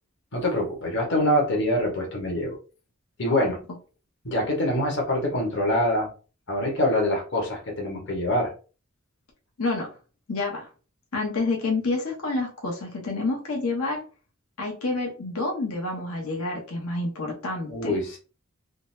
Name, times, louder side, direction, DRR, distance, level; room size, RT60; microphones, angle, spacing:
voice 1, 0.3-2.6 3.2-3.6 4.2-6.1 6.5-8.5 17.7-18.2, left 1 dB, 55° left, -1 dB, 1.1 m, -25 dB
voice 2, 10.3-10.7 11.1-14.0 14.6-18.0, left 3 dB, 90° left, 0 dB, 0.9 m, -28 dB
3.8 x 2.1 x 2.6 m, 0.35 s
head